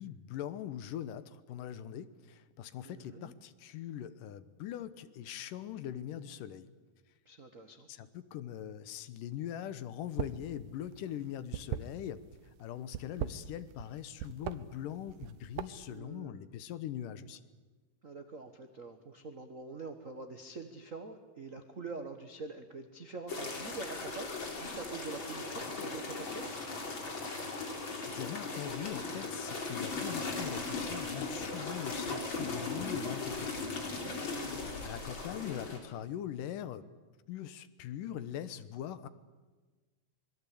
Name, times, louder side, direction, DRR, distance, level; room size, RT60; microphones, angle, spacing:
voice 1, 0.0-6.7 7.9-12.2 12.6-17.4 28.0-33.6 34.8-36.9 37.3-39.1, left 10 dB, 80° left, 14 dB, 2.6 m, -42 dB
voice 2, 2.8-3.3 7.2-7.9 15.9-16.5 18.0-26.5, right 3 dB, 55° right, 6 dB, 0.8 m, -45 dB
sound 1, 10.0-10.5 10.8-12.4 12.8-13.9 14.2-14.6 15.1-15.9, right 11 dB, 75° right, 2.3 m, -38 dB
sound 2, 23.3-35.8, left 3 dB, 35° left, 3.9 m, -38 dB
26.0 x 21.5 x 8.5 m, 1.3 s
omnidirectional pair, 3.8 m